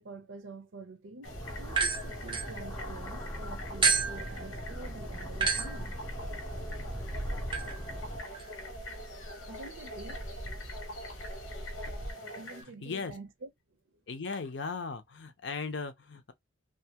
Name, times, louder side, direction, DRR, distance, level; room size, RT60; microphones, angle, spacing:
voice 1, 0.0-6.0 9.5-11.1 11.6-12.0 12.4-13.5, right 3 dB, 80° right, 0.6 m, -48 dB
sound 1, 1.2-12.6, left 1 dB, 85° left, 1.0 m, -44 dB
sound 2, 1.2-8.2, equal, 15° left, 0.7 m, -41 dB
sound 3, 1.7-3.2 3.8-12.1, right 4 dB, 25° right, 0.5 m, -34 dB
voice 2, 10.9-11.3 11.6-11.9 12.6-13.2 14.1-16.3, left 4 dB, 60° left, 0.6 m, -38 dB
2.6 x 2.3 x 2.8 m
head